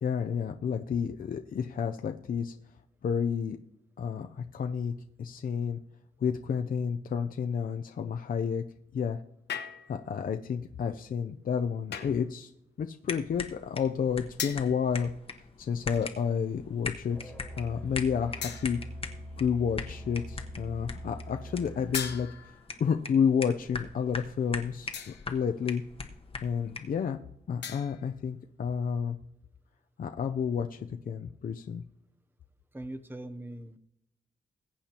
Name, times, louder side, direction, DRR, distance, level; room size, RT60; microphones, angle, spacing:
voice 1, 0.0-2.5 3.0-3.6 4.0-5.8 6.2-8.6 8.9-9.2 9.9-12.5 12.8-15.1 15.6-18.8 19.4-22.3 22.8-25.8 26.4-27.2 27.5-29.2 30.0-31.8, left 7 dB, 55° left, 5 dB, 0.5 m, -30 dB
sound 1, 9.5-10.1 11.9-12.3 14.4-14.8 15.9-16.3 17.0-17.1 18.4-19.0 21.9-22.8 24.9-25.4 27.6-28.2, left 7 dB, 75° left, 1.2 m, -39 dB
sound 2, 13.1-27.0, left 4 dB, 30° left, 1.1 m, -42 dB
Musical instrument, 17.1-22.2, equal, 5° left, 2.0 m, -43 dB
voice 2, 32.7-33.8, right 1 dB, 10° right, 10 dB, 0.7 m, -41 dB
21.0 x 8.6 x 2.9 m, 0.83 s
cardioid pair, 100°, 18 cm